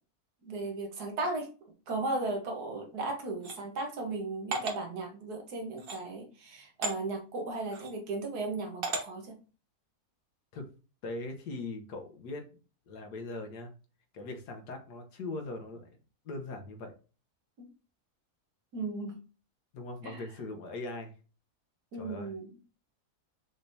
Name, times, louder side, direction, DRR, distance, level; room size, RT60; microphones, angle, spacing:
voice 1, 0.4-1.5 1.9-9.4 17.6-17.7 18.7-19.2 20.0-20.2 21.9-22.5, right 2 dB, 80° right, 2 dB, 1.7 m, -36 dB
sound 1, 3.4-3.6 4.5-4.8 5.8-6.0 6.8-7.0 7.7-7.9 8.8-9.0, right 3 dB, 40° right, 1.0 m, -34 dB
voice 2, 11.0-12.5 12.9-13.7 14.1-15.9 16.2-16.9 19.7-21.1 21.9-22.3, left 2 dB, 90° left, 4 dB, 1.6 m, -40 dB
5.8 x 3.3 x 2.7 m, 0.35 s
omnidirectional pair, 1.7 m